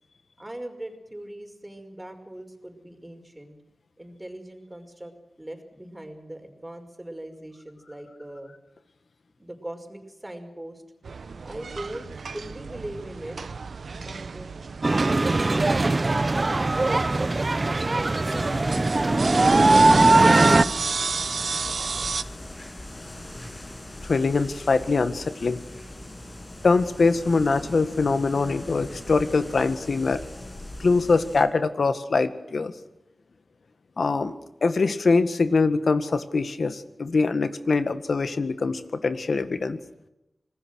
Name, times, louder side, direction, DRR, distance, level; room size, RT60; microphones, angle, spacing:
voice 1, 0.4-3.6 4.0-5.1 5.4-8.5 9.4-10.8 11.4-12.1 12.3-13.4 13.9-14.5 14.9-20.3, right 1 dB, 20° right, 5 dB, 5.6 m, -41 dB
sound 1, 11.0-22.2, right 4 dB, 80° right, 0.9 m, -34 dB
sound 2, 14.8-20.6, right 2 dB, 45° right, 1.1 m, -20 dB
sound 3, 18.2-31.4, left 1 dB, 40° left, 7.3 m, -39 dB
voice 2, 24.0-25.6 26.6-30.2 30.8-32.7 34.0-34.3 34.6-39.8, left 4 dB, 75° left, 10 dB, 1.7 m, -23 dB
26.5 x 19.5 x 6.4 m, 0.93 s
cardioid pair, 55°, 0 cm